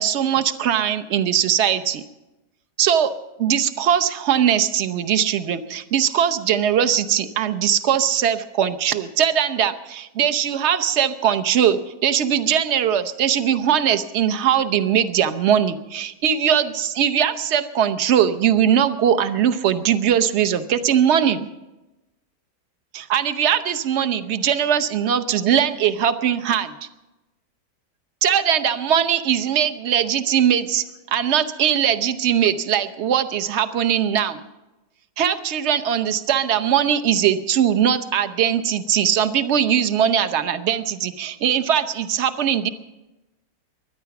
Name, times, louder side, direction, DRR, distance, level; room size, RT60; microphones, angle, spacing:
voice 1, 0.0-2.0 2.8-3.1 3.4-21.5 22.9-26.7 28.2-34.4 35.2-42.7, right 9 dB, 50° right, 10 dB, 0.9 m, -20 dB
23.0 x 10.5 x 5.9 m, 1.0 s
omnidirectional pair, 1.9 m